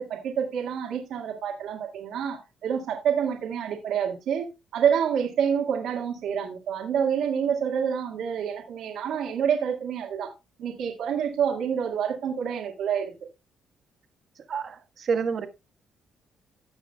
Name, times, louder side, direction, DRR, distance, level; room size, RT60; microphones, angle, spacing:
voice 1, 0.0-4.5 4.7-10.3 10.6-13.1, right 8 dB, 80° right, 1.8 m, -27 dB
voice 2, 14.5-15.5, right 6 dB, 55° right, 1.4 m, -28 dB
16.0 x 6.3 x 2.3 m
cardioid pair, 90°, 0 cm